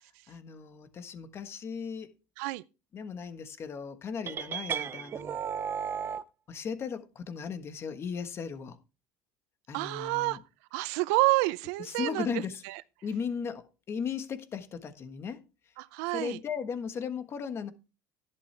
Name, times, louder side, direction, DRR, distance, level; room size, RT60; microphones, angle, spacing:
voice 1, 0.3-2.1 2.9-5.4 6.5-8.8 9.7-10.4 11.8-12.6 13.0-15.4 16.1-17.7, left 6 dB, 30° left, 1.3 m, -36 dB
sound 1, 4.3-6.2, right 7 dB, 30° right, 0.5 m, -34 dB
voice 2, 9.7-10.4 10.7-12.8 15.8-16.4, right 21 dB, 85° right, 0.6 m, -29 dB
11.0 x 11.0 x 3.3 m
cardioid pair, 145°, 8 cm